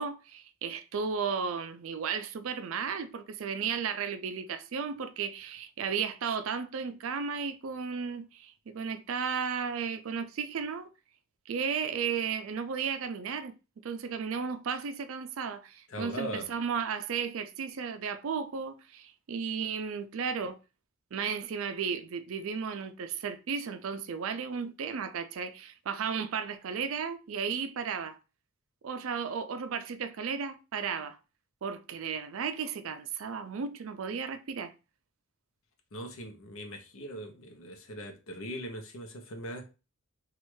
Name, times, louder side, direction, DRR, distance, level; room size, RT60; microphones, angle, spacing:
voice 1, 0.0-10.9 11.5-13.5 13.8-20.6 21.1-28.2 28.8-31.2 31.6-34.7, right 6 dB, 70° right, 0.4 m, -34 dB
voice 2, 15.9-16.5 35.9-39.7, equal, 80° left, 0.7 m, -40 dB
3.1 x 2.4 x 3.1 m
head